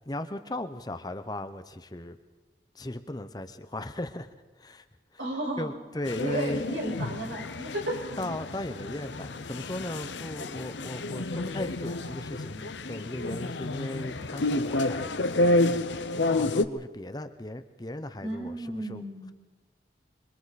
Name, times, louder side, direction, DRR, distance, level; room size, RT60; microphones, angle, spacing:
voice 1, 0.1-2.2 2.8-4.3 4.6-4.8 5.6-6.6 8.2-19.0, left 1 dB, 20° left, 9 dB, 0.8 m, -37 dB
voice 2, 5.2-5.7 6.2-8.0 18.2-19.3, right 1 dB, 85° right, 0 dB, 5.5 m, -33 dB
sound 1, 6.1-16.6, left 2 dB, 80° left, 0.9 m, -30 dB
26.5 x 23.5 x 4.2 m, 1.2 s
head